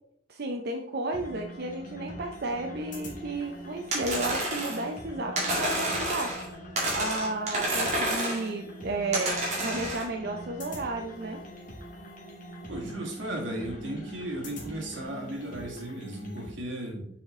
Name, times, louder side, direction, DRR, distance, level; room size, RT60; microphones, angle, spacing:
voice 1, 0.3-6.3 6.9-11.4, right 2 dB, 60° right, 3 dB, 0.6 m, -33 dB
sound 1, 1.1-16.5, equal, 45° left, 1.8 m, -43 dB
sound 2, 3.9-4.9 5.4-6.5 6.8-8.5 9.1-10.1, right 1 dB, 40° right, 2.2 m, -29 dB
voice 2, 12.7-17.1, right 1 dB, 85° right, 0 dB, 1.9 m, -36 dB
6.8 x 4.9 x 3.6 m, 0.74 s
head